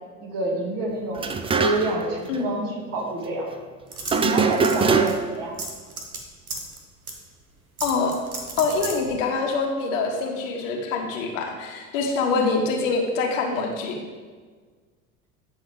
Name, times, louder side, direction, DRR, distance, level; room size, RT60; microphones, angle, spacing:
voice 1, 0.2-3.5 4.1-5.5 12.2-12.5, right 1 dB, 50° right, -2 dB, 2.4 m, -28 dB
sound 1, 1.2-2.1 2.3-2.4 4.1-5.4, right 5 dB, 15° right, 0.4 m, -22 dB
sound 2, 3.9-4.8 5.1-5.2 5.6-6.2 6.5-6.8 7.1-7.2 7.8-9.0, right 3 dB, 90° right, 1.2 m, -33 dB
voice 2, 7.8-8.1 8.6-14.0, left 4 dB, 65° left, 2 dB, 1.5 m, -25 dB
9.7 x 6.0 x 3.7 m, 1.5 s
figure-of-eight pair, 70°, 41 cm